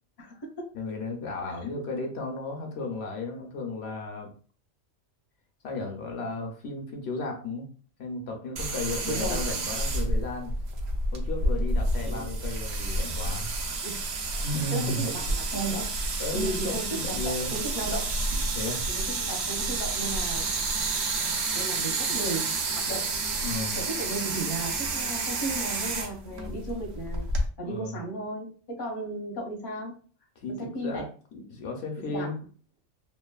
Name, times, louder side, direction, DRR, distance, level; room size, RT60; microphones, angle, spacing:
voice 1, 0.2-0.7 9.1-9.4 12.1-12.3 13.8-14.1 14.7-15.9 16.3-18.4 18.9-20.5 21.5-22.5 22.8-23.0 23.7-27.3 27.6-29.9 30.5-31.1 32.1-32.3, right 2 dB, 30° left, 0 dB, 0.5 m, -35 dB
voice 2, 0.7-4.3 5.6-7.7 8.0-10.5 11.1-13.5 14.4-15.1 16.2-17.5 18.3-18.8 23.4-23.8 27.6-28.0 30.4-31.0 31.3-32.4, left 2 dB, 65° left, 3 dB, 0.8 m, -34 dB
sound 1, 8.6-27.5, right 2 dB, 70° right, 0.8 m, -30 dB
3.1 x 2.1 x 2.2 m, 0.41 s
omnidirectional pair, 1.2 m